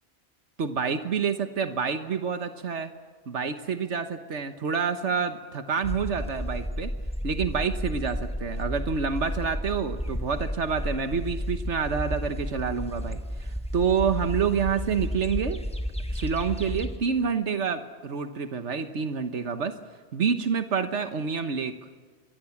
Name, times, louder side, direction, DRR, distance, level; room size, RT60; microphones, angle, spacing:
voice 1, 0.6-2.9 3.3-6.9 7.2-15.6 16.1-19.7 20.1-21.7, right 6 dB, 90° right, 8 dB, 1.5 m, -28 dB
sound 1, 5.8-17.0, equal, 5° left, 1.7 m, -32 dB
25.5 x 23.0 x 7.3 m, 1.5 s
omnidirectional pair, 1.2 m